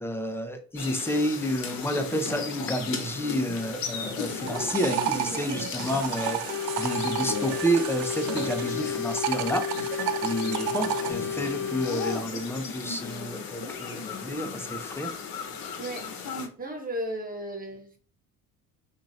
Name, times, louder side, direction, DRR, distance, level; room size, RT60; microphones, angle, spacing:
voice 1, 0.0-15.1, equal, 5° left, 0.6 m, -30 dB
sound 1, 0.8-16.5, left 5 dB, 50° left, 0.9 m, -36 dB
sound 2, 4.2-8.8 9.1-11.1, right 12 dB, 55° right, 0.5 m, -32 dB
voice 2, 5.1-5.5 15.8-16.0 16.6-18.0, right 1 dB, 20° right, 1.1 m, -35 dB
sound 3, 6.5-12.2, left 7 dB, 80° left, 0.7 m, -32 dB
2.9 x 2.6 x 4.1 m
hypercardioid pair, 60°, 45 cm